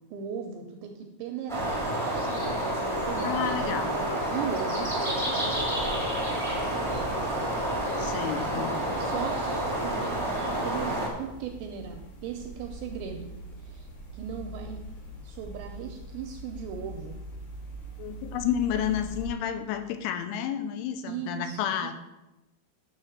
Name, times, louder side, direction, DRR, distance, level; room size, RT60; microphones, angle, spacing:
voice 1, 0.1-1.7 2.6-3.9 4.3-5.4 6.7-7.3 8.5-8.7 9.0-13.3 13.6-14.8 15.2-17.2 21.1-21.9, right 7 dB, 80° right, 4 dB, 2.6 m, -38 dB
sound 1, 1.5-11.1, right 1 dB, 5° left, 0.4 m, -29 dB
voice 2, 3.2-4.0 8.0-8.8 18.0-21.9, left 9 dB, 85° left, 8 dB, 3.1 m, -31 dB
sound 2, 5.5-19.3, right 1 dB, 60° left, 3.9 m, -43 dB
10.0 x 4.3 x 6.5 m, 0.98 s
omnidirectional pair, 5.7 m